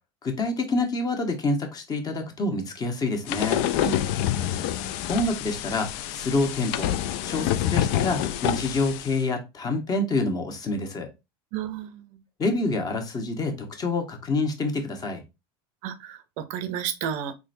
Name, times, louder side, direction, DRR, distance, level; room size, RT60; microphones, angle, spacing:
voice 1, 0.2-3.6 5.1-6.9 7.2-11.1 12.4-15.2, left 2 dB, 30° left, 1.1 m, -27 dB
sound 1, 3.3-9.2, left 11 dB, 60° left, 0.4 m, -27 dB
voice 2, 11.5-12.2 15.8-17.3, right 9 dB, 60° right, 0.6 m, -32 dB
3.8 x 3.2 x 2.5 m
supercardioid pair, 110°, 13 cm